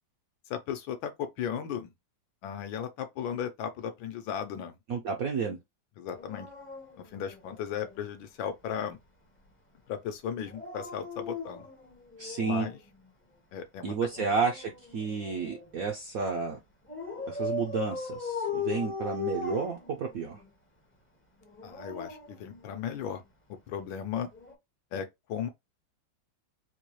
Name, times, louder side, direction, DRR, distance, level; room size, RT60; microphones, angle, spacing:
voice 1, 0.5-1.9 2.4-4.7 6.0-6.5 7.0-9.0 9.9-11.7 12.4-12.8 13.5-14.3 21.6-23.2 23.5-24.3 24.9-25.5, left 8 dB, 75° left, 1.4 m, -36 dB
voice 2, 4.9-5.6 12.2-12.7 13.8-16.6 17.3-20.4, right 5 dB, 70° right, 0.8 m, -31 dB
Dog, 6.1-8.0 10.4-12.8 14.1-15.7 16.9-20.4 21.4-23.1 24.3-24.5, left 4 dB, 15° left, 0.4 m, -38 dB
4.4 x 2.3 x 3.1 m
omnidirectional pair, 2.2 m